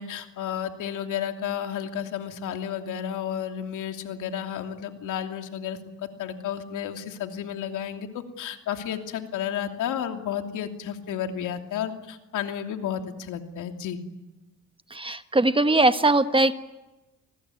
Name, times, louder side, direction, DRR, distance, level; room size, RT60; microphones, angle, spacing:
voice 1, 0.0-14.0, left 9 dB, 85° left, 5 dB, 3.0 m, -32 dB
voice 2, 14.9-16.5, right 2 dB, 15° right, 10 dB, 1.3 m, -20 dB
30.0 x 20.5 x 9.7 m, 1.0 s
cardioid pair, 90°, 30 cm